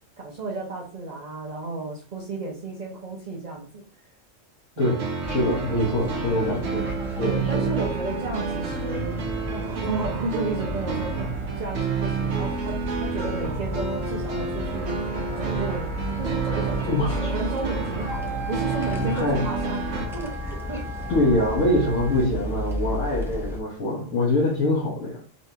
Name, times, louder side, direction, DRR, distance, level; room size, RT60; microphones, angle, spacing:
voice 1, 0.2-4.1 4.8-4.9 7.2-9.2 9.5-11.3 11.6-15.1 15.3-15.9 16.2-20.9 22.0-22.2, right 3 dB, 40° right, -2 dB, 0.8 m, -33 dB
sound 1, 4.8-20.1, right 5 dB, 65° right, 1.0 m, -30 dB
sound 2, 5.2-23.6, left 1 dB, 5° right, 0.5 m, -34 dB
voice 2, 5.3-7.7 16.9-17.4 19.0-19.4 21.1-25.2, left 1 dB, 75° left, -4 dB, 1.5 m, -24 dB
Wind instrument woodwind instrument, 14.6-22.3, equal, 85° right, 1.4 m, -39 dB
4.1 x 3.3 x 2.8 m, 0.41 s
omnidirectional pair, 1.3 m